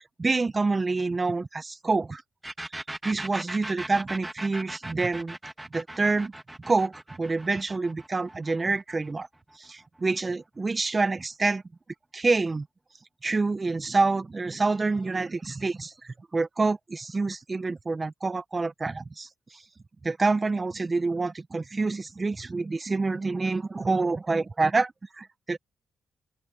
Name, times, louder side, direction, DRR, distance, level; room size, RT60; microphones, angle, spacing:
voice 1, 0.0-2.2 3.0-5.4 5.7-6.3 6.6-9.3 9.6-11.6 12.1-12.7 13.2-19.6 20.0-25.6, right 3 dB, 35° right, 1.7 m, -27 dB
sound 1, 2.4-9.9, right 1 dB, 15° right, 3.3 m, -39 dB
open air
supercardioid pair, 50°, 0 cm